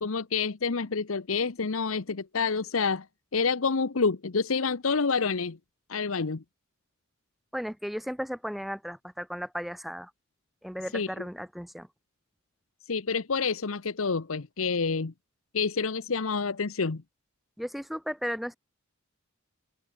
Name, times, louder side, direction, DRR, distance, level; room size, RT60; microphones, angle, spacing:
voice 1, 0.0-3.1 3.3-5.6 5.9-6.4 10.9-11.1 12.9-15.1 15.5-17.0, left 5 dB, 75° left, 0.9 m, -28 dB
voice 2, 7.5-10.1 10.6-11.9 17.6-18.6, equal, ahead, 2.0 m, -35 dB
head